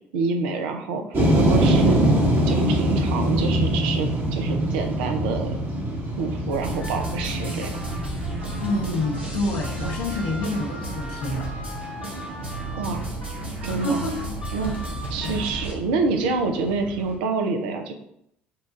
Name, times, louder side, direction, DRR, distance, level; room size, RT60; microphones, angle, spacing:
voice 1, 0.1-2.0 2.5-5.5 6.2-7.7 12.7-13.0 13.6-14.1 14.5-14.8 15.1-17.9, right 4 dB, 65° right, 5 dB, 0.6 m, -27 dB
sound 1, 1.1-17.1, right 1 dB, 40° right, 1.3 m, -25 dB
sound 2, 6.5-15.7, right 2 dB, 85° right, 0.9 m, -33 dB
voice 2, 8.6-11.5 13.6-14.2 14.6-14.8 15.2-15.5, left 2 dB, 65° left, -1 dB, 1.0 m, -28 dB
5.6 x 2.4 x 3.7 m, 0.74 s
figure-of-eight pair, 55°, 6 cm